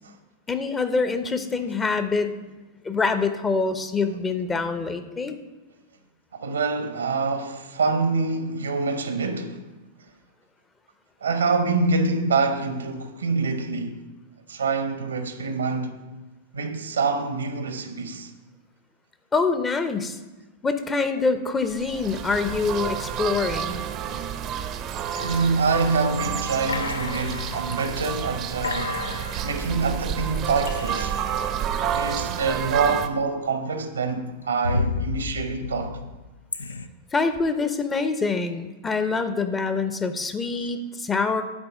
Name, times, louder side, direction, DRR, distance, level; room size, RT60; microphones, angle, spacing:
voice 1, 0.5-2.3 2.8-5.4 19.3-20.2 20.6-23.8 37.1-41.4, left 4 dB, 15° left, 0.8 m, -25 dB
voice 2, 6.3-9.6 11.2-14.0 14.5-16.0 16.5-18.3 25.2-29.0 29.4-31.2 31.9-36.0, right 4 dB, 75° right, 1.0 m, -26 dB
sound 1, 21.6-33.1, right 8 dB, 35° right, 0.7 m, -30 dB
sound 2, 25.1-26.1 26.7-27.9 28.3-28.4 28.6-31.3 32.6-33.4 33.8-36.9, left 3 dB, 80° left, 0.5 m, -33 dB
9.8 x 4.9 x 7.3 m
figure-of-eight pair, 95°, 0 cm